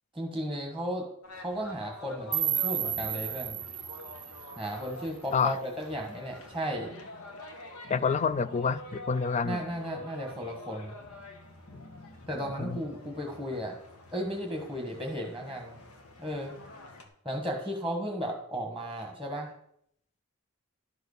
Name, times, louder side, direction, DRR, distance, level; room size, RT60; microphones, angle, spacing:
voice 1, 0.1-1.1 1.3-3.6 4.6-6.9 9.4-11.0 12.3-13.8 14.1-15.8 16.2-16.5 17.2-19.5, equal, ahead, 1.4 m, -35 dB
sound 1, 1.2-17.1, left 2 dB, 80° left, 1.5 m, -47 dB
sound 2, 2.3-5.3, right 11 dB, 25° right, 0.5 m, -33 dB
voice 2, 7.9-9.6 12.6-12.8, left 5 dB, 30° left, 0.4 m, -28 dB
11.5 x 4.8 x 6.5 m
head